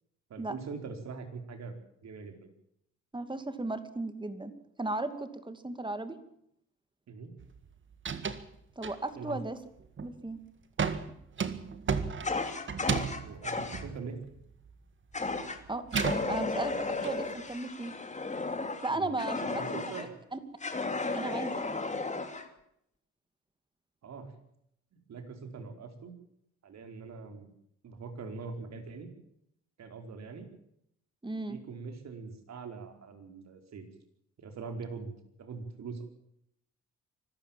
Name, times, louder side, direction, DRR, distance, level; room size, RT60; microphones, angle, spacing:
voice 1, 0.3-2.5 7.1-7.3 9.2-9.4 13.2-14.2 18.9-20.1 24.0-24.3 24.9-26.1 26.6-27.5 27.8-29.1 29.8-30.5 31.5-33.9 34.4-36.0, right 4 dB, 60° right, 6 dB, 4.8 m, -43 dB
voice 2, 3.1-4.5 4.8-6.2 8.8-9.6 10.0-10.4 15.7-15.8 16.3-17.9 18.8-20.4 21.1-21.8 31.2-31.6, right 2 dB, 15° right, 10 dB, 2.6 m, -36 dB
sound 1, 7.4-7.7 7.9-8.5 8.8-9.3 9.8-10.2 10.8-14.8 15.1-17.1, right 6 dB, 40° right, 1.9 m, -34 dB
Fire, 12.2-13.8 15.1-15.6 15.9-20.1 20.6-22.5, left 3 dB, 25° left, 2.8 m, -34 dB
25.0 x 15.0 x 7.5 m, 0.75 s
cardioid pair, 90°, 30 cm